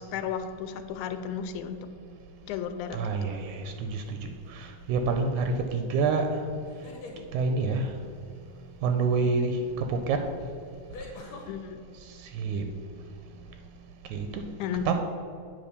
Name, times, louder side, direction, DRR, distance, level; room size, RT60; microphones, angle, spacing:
voice 1, 0.0-1.9 2.4-3.3 11.5-11.8 14.6-14.9, left 7 dB, 85° left, 9 dB, 2.0 m, -34 dB
voice 2, 2.9-4.2 4.5-6.3 7.3-7.9 8.8-10.2 12.4-12.6 14.1-14.4 14.9-15.0, right 4 dB, 85° right, 5 dB, 2.0 m, -27 dB
sound 1, 4.0-4.5 6.6-7.3 9.5-9.6 10.9-11.5, left 3 dB, 60° left, 1.5 m, -43 dB
8.8 x 4.1 x 6.7 m, 2.3 s
omnidirectional pair, 3.4 m